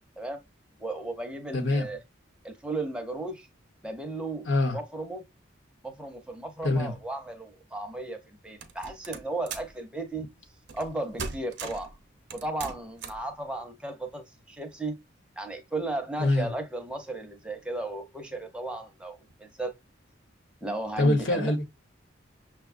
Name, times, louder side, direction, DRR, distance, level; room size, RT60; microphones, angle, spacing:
voice 1, 0.8-2.0 2.4-3.5 3.8-5.2 5.8-10.3 10.7-11.9 12.3-15.0 15.4-19.7 20.6-21.5, right 2 dB, 5° right, 0.7 m, -35 dB
voice 2, 1.5-1.9 4.5-4.8 6.6-6.9 16.2-16.5 21.0-21.6, left 2 dB, 80° left, 1.2 m, -24 dB
sound 1, 8.6-9.8 10.7-10.9 11.2-11.9 12.3-13.3, right 5 dB, 60° right, 0.7 m, -38 dB
6.3 x 2.3 x 2.6 m
head